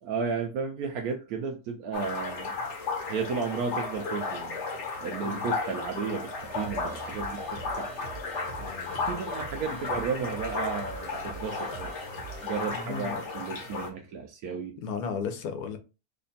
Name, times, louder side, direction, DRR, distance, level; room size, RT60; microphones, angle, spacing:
voice 1, 0.0-2.5 3.1-4.6 5.0-7.9 9.1-11.9 12.4-14.8, right 5 dB, 80° right, 1.1 m, -33 dB
sound 1, 1.9-13.9, left 3 dB, 55° left, 1.0 m, -34 dB
sound 2, 6.4-12.7, right 5 dB, 55° right, 0.7 m, -45 dB
voice 2, 8.6-9.1 12.7-13.2 14.8-15.8, left 6 dB, 85° left, 1.2 m, -35 dB
3.3 x 2.3 x 4.0 m
omnidirectional pair, 1.6 m